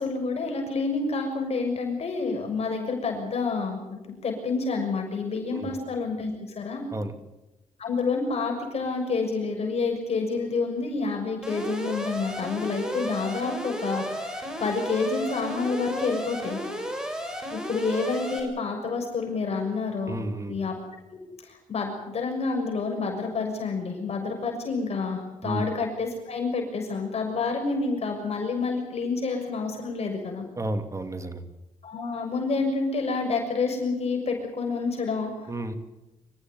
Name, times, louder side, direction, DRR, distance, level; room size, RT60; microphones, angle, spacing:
voice 1, 0.0-6.8 7.8-16.6 17.5-20.2 20.5-20.7 21.1-30.4 31.8-35.3, left 4 dB, 50° left, 2 dB, 6.7 m, -28 dB
Alarm, 11.4-18.4, equal, 5° right, 6.6 m, -33 dB
voice 2, 20.1-20.6 25.4-25.7 30.6-31.4 35.5-35.7, right 1 dB, 20° right, 7 dB, 2.7 m, -31 dB
26.5 x 15.0 x 9.4 m, 1.0 s
cardioid pair, 100°, 14 cm